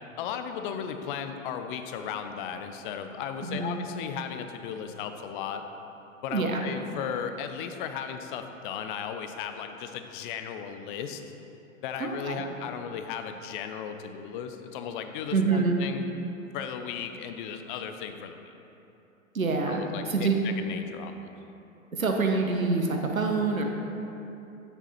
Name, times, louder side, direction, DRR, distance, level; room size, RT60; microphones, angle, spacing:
voice 1, 0.2-5.6 6.2-11.2 11.8-16.0 16.5-18.4 19.7-21.3, left 8 dB, 40° left, 7 dB, 0.7 m, -36 dB
voice 2, 3.4-3.8 6.3-6.6 12.0-12.4 15.3-15.8 19.3-20.4 21.9-23.6, right 4 dB, 85° right, 2 dB, 1.2 m, -26 dB
9.0 x 7.2 x 4.3 m, 3.0 s
figure-of-eight pair, 105°, 40 cm